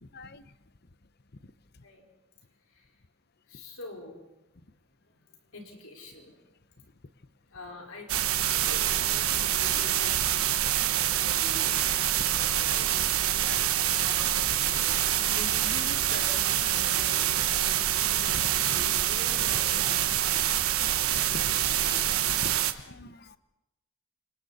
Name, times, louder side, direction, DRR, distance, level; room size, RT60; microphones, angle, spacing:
voice 1, 0.1-0.4 13.3-13.7 14.9-15.0 18.3-18.9 19.4-19.6 20.1-20.2 21.1-22.1 22.4-22.5 22.9-23.4, left 3 dB, 50° left, 13 dB, 0.9 m, -43 dB
voice 2, 3.5-4.3 5.5-6.3 7.5-8.1 8.5-10.7 10.9-11.7 12.2-14.6 15.1-20.7, left 2 dB, 85° left, 0 dB, 5.1 m, -45 dB
sound 1, 8.1-22.7, right 11 dB, 90° right, 1.2 m, -26 dB
28.5 x 27.5 x 4.2 m, 0.95 s
head